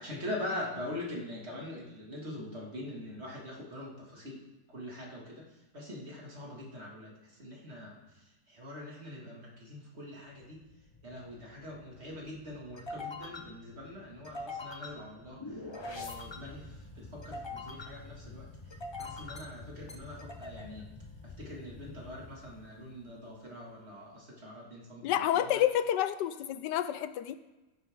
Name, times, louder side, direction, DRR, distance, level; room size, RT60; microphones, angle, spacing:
voice 1, 0.0-4.4 4.7-5.4 5.7-7.1 7.4-8.0 8.5-10.6 11.0-15.6 15.8-18.5 19.0-20.9 21.4-25.5, left 1 dB, 35° right, -3 dB, 2.6 m, -43 dB
sound 1, 10.4-23.2, left 2 dB, 30° left, 0.5 m, -45 dB
voice 2, 25.0-27.4, left 11 dB, 80° left, 13 dB, 1.2 m, -29 dB
15.5 x 8.7 x 3.7 m, 1.1 s
omnidirectional pair, 1.9 m